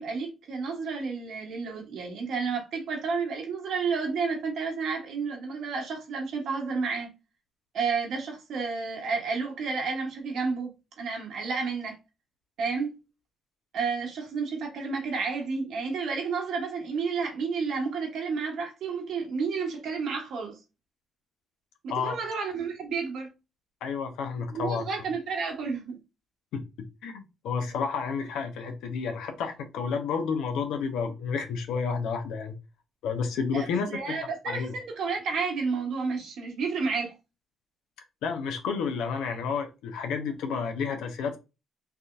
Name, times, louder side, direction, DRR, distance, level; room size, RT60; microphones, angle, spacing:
voice 1, 0.0-7.1 7.7-10.7 11.0-12.0 12.6-12.9 13.7-20.6 21.8-23.3 24.5-26.0 33.5-37.1, right 5 dB, 75° right, 1.4 m, -31 dB
voice 2, 23.8-24.8 26.5-26.6 27.0-32.6 33.0-34.2 34.5-34.7 38.2-41.4, left 5 dB, 85° left, 0.7 m, -30 dB
3.5 x 2.7 x 2.4 m
cardioid pair, 90°, 0 cm